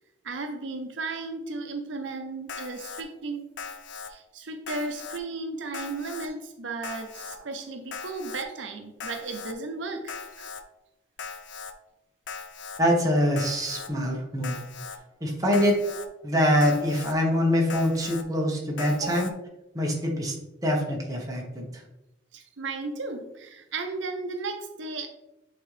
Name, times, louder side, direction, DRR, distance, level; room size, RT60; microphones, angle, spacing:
voice 1, 0.2-3.5 4.1-10.5 19.0-19.3 22.3-25.1, right 3 dB, 75° right, 5 dB, 0.7 m, -35 dB
Alarm, 2.5-3.0 3.6-4.1 4.7-5.2 5.7-6.3 6.8-7.4 7.9-8.4 9.0-9.5 10.1-10.6 11.2-11.7 12.3-12.8 13.4-13.9 14.4-15.0 15.5-16.1 16.6-17.1 17.7-18.2 18.8-19.3, left 5 dB, 70° left, 0.5 m, -39 dB
voice 2, 12.8-14.6 15.2-15.8 16.2-19.3 19.7-20.3 20.6-21.8, equal, 20° right, -1 dB, 1.1 m, -24 dB
8.1 x 3.8 x 3.3 m, 0.95 s
head